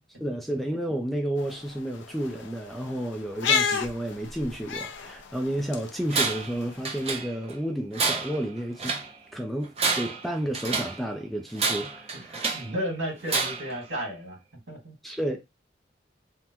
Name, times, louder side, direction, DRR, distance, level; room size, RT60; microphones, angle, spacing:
voice 1, 0.2-9.0 9.3-12.5 15.0-15.4, right 1 dB, ahead, 0.4 m, -31 dB
sound 1, 1.4-7.1, left 6 dB, 85° left, 0.5 m, -32 dB
Tools, 6.1-6.6 6.9-7.6 7.9-9.1 9.6-11.0 11.6-12.7 13.3-13.8, right 4 dB, 35° right, 0.7 m, -29 dB
voice 2, 12.5-14.4 14.7-14.9, equal, 80° right, 1.8 m, -33 dB
3.5 x 2.1 x 2.9 m
head